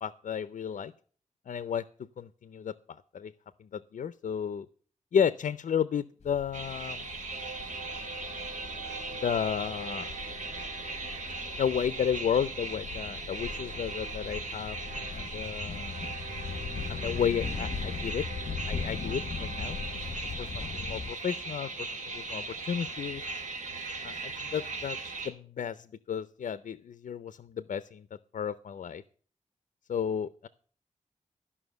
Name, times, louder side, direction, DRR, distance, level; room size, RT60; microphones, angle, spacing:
voice 1, 0.0-0.9 1.5-1.8 2.2-3.3 3.6-4.7 5.1-7.0 9.1-10.1 11.6-16.1 16.9-18.2 18.7-19.8 20.4-23.2 24.0-25.0 25.2-28.1 28.3-29.0 29.9-30.5, left 8 dB, 75° left, 15 dB, 0.5 m, -32 dB
sound 1, 6.2-21.1, left 5 dB, 55° left, 1.0 m, -40 dB
sound 2, 6.5-25.3, right 3 dB, 70° right, 2.9 m, -38 dB
13.5 x 5.7 x 8.0 m, 0.43 s
wide cardioid pair, 150°, 13 cm